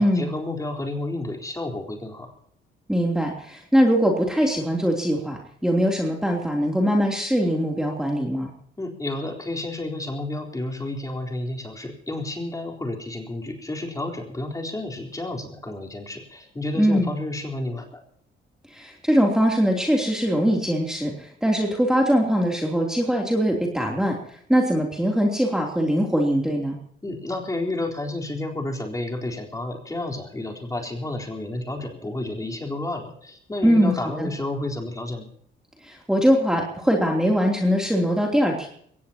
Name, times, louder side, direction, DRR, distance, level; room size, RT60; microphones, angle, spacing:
voice 1, 0.0-2.3 8.8-18.0 27.0-35.3, left 2 dB, 15° left, 1 dB, 3.9 m, -31 dB
voice 2, 2.9-8.5 16.8-17.1 18.7-24.1 24.5-26.8 33.6-34.3 35.8-38.7, equal, 5° right, 0 dB, 3.2 m, -22 dB
22.5 x 18.0 x 2.9 m, 0.64 s
cardioid pair, 90°, 20 cm